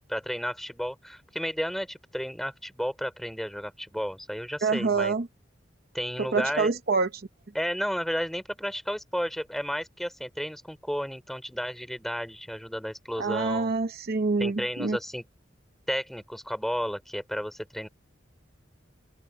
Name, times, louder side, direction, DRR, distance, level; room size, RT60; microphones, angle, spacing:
voice 1, 0.1-5.2 5.9-6.7 7.5-13.7 14.4-15.2 15.9-17.9, equal, ahead, 5.0 m, -32 dB
voice 2, 4.6-5.3 6.2-7.3 13.2-15.0, right 4 dB, 50° right, 0.8 m, -26 dB
open air
head